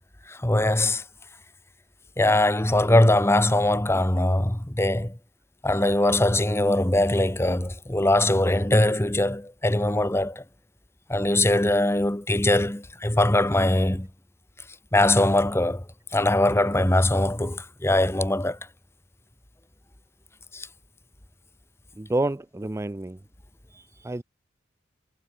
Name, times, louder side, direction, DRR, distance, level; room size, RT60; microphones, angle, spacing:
voice 1, 0.3-1.0 2.2-5.2 5.6-10.4 11.1-14.1 14.9-15.8 16.1-18.6 20.5-20.7, left 1 dB, 10° left, 1.1 m, -22 dB
voice 2, 22.0-23.2 23.7-24.2, right 2 dB, 15° right, 0.4 m, -29 dB
head